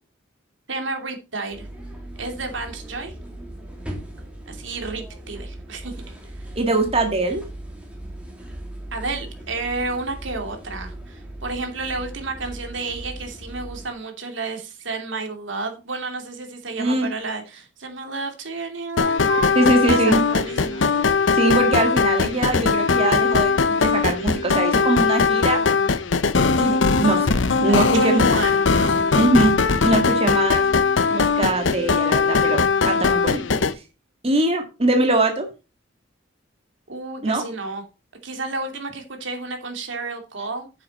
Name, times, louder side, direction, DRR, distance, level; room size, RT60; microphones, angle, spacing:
voice 1, 0.7-1.7 2.2-3.1 4.5-6.5 8.9-20.9 27.7-29.1 36.9-37.8 38.2-40.8, right 3 dB, 90° right, 2.8 m, -31 dB
sound 1, 1.5-13.9, right 1 dB, 5° right, 3.0 m, -38 dB
voice 2, 6.6-7.4 16.8-17.1 19.6-20.2 21.3-25.6 26.6-28.2 29.1-29.5 29.8-30.6 31.1-33.6 34.2-35.5 37.2-37.4, right 2 dB, 35° right, 1.9 m, -22 dB
sound 2, 19.0-33.7, left 5 dB, 85° left, 0.8 m, -20 dB
9.3 x 7.6 x 4.2 m
head